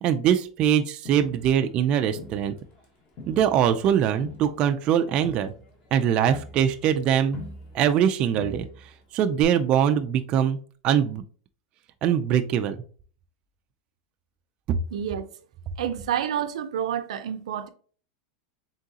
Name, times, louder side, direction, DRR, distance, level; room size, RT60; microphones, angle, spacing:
voice 1, 0.0-2.5 3.3-5.5 5.9-7.4 7.7-8.7 9.1-10.6 10.8-11.2 12.0-12.8 14.7-14.8, right 9 dB, 30° right, 0.3 m, -22 dB
Crowd, 1.1-2.9 3.2-8.1 8.4-9.0 9.4-9.5, left 1 dB, 30° left, 1.0 m, -43 dB
voice 2, 14.9-15.2 15.8-17.7, right 9 dB, 90° right, 0.5 m, -29 dB
3.8 x 3.7 x 2.7 m
supercardioid pair, 160°, 3 cm